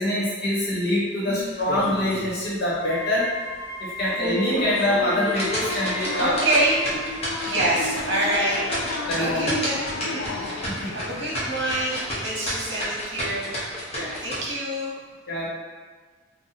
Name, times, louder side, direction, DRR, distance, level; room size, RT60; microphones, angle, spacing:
voice 1, 0.0-3.3 3.8-6.4 9.1-9.6 10.7-10.9 13.9-14.1 15.3-15.5, left 1 dB, 55° left, -7 dB, 1.0 m, -25 dB
voice 2, 1.2-1.6 6.2-6.8 7.4-8.6 9.2-9.8 10.1-10.5 10.9-13.5 14.2-14.9, right 1 dB, 60° right, -5 dB, 1.0 m, -26 dB
sound 1, 1.6-2.3 2.7-2.8 3.3-3.4 4.0-14.4, equal, 30° left, 0.8 m, -31 dB
Wind instrument woodwind instrument, 2.7-7.2, left 1 dB, 15° right, 0.6 m, -36 dB
sound 2, 4.6-12.1, left 3 dB, 80° left, 0.3 m, -34 dB
2.7 x 2.2 x 3.9 m, 1.5 s
head